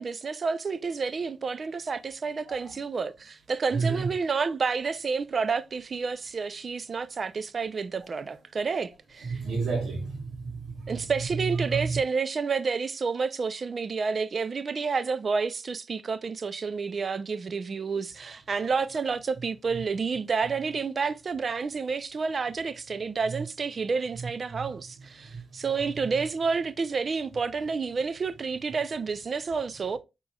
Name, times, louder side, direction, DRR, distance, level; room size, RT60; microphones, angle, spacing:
voice 1, 0.0-9.4 10.9-30.0, right 5 dB, 50° right, 0.4 m, -30 dB
voice 2, 3.7-4.1 9.2-11.0 11.3-12.0 23.3-23.4 24.1-24.6 25.3-25.4, right 4 dB, 80° right, 1.3 m, -31 dB
5.4 x 3.0 x 2.2 m
cardioid pair, 80°, 0 cm